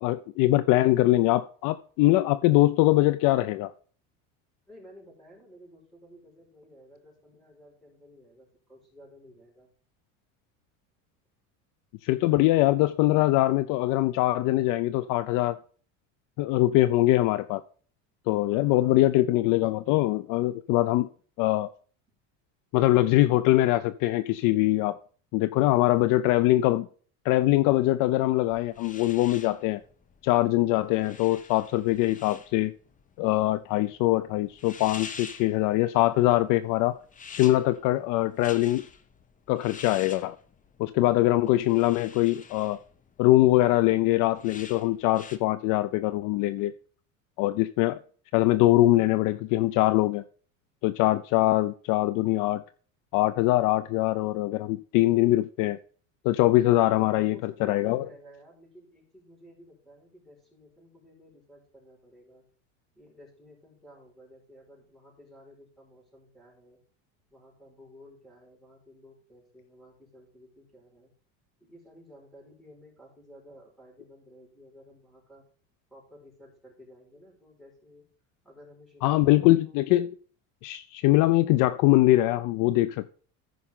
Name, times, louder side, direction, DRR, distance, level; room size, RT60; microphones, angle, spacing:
voice 1, 0.0-3.7 12.0-15.6 16.4-17.6 18.3-21.1 21.4-21.7 22.7-25.0 25.3-26.9 27.2-29.8 30.2-32.7 33.2-37.0 37.3-38.8 39.5-40.4 40.8-42.8 43.2-46.7 47.4-48.0 48.3-50.2 50.8-52.6 53.1-55.8 56.2-58.1 79.0-80.1 80.6-83.1, left 16 dB, 55° left, 0.5 m, -23 dB
voice 2, 4.7-9.7 18.5-19.0 57.0-62.4 62.9-66.8 67.3-71.1 71.6-75.4 75.9-78.1 78.4-79.8, equal, ahead, 5.2 m, -53 dB
sound 1, 28.5-45.4, left 5 dB, 20° left, 0.8 m, -47 dB
14.0 x 5.5 x 3.7 m
supercardioid pair, 120°, 38 cm